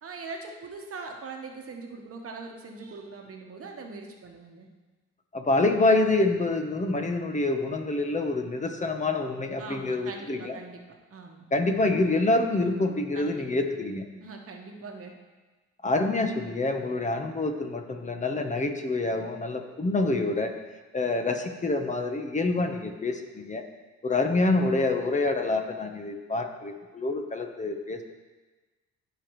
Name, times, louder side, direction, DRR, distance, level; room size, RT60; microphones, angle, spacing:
voice 1, 0.0-4.7 9.6-10.8 11.1-11.4 13.1-13.5 14.2-15.1, right 4 dB, 50° right, 2 dB, 1.2 m, -41 dB
voice 2, 5.3-10.6 11.5-14.1 15.8-20.5 20.9-23.6 24.0-28.0, left 2 dB, 25° left, 5 dB, 0.9 m, -26 dB
14.5 x 5.1 x 3.1 m, 1.2 s
cardioid pair, 90°, 30 cm